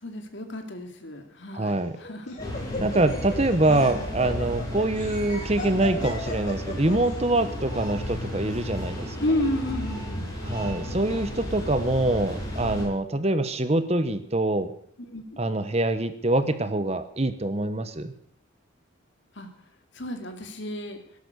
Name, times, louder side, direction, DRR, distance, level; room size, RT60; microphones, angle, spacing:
voice 1, 0.0-2.4 9.2-10.4 15.1-15.4 19.3-19.5 19.9-21.0, left 1 dB, 60° left, 5 dB, 2.6 m, -31 dB
voice 2, 1.5-2.0 2.8-9.2 10.4-14.7 15.4-18.1, right 2 dB, 30° right, 11 dB, 1.0 m, -25 dB
Laughter, 1.7-7.1, left 1 dB, 35° left, 3.7 m, -37 dB
sound 1, 2.4-12.8, left 1 dB, 15° left, 6.1 m, -33 dB
17.0 x 12.0 x 6.8 m, 0.64 s
head